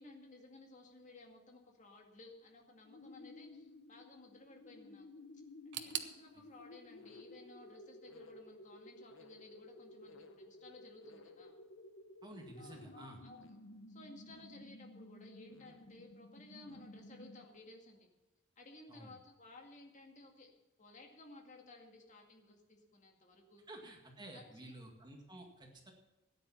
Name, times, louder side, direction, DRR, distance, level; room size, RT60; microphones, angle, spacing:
voice 1, 0.0-5.1 5.7-11.5 12.6-13.4 13.9-18.1 18.6-20.5 20.8-23.6 24.3-24.7, left 2 dB, 40° left, 2 dB, 2.2 m, -57 dB
sound 1, 2.8-17.7, left 2 dB, 80° left, 0.9 m, -55 dB
sound 2, 5.7-8.6 8.9-9.7 10.0-10.1 10.9-11.0, right 10 dB, 60° right, 0.9 m, -47 dB
voice 2, 12.2-13.2 18.9-19.2 23.7-25.9, right 1 dB, 20° right, 2 dB, 2.0 m, -52 dB
13.5 x 9.8 x 5.8 m, 1.0 s
head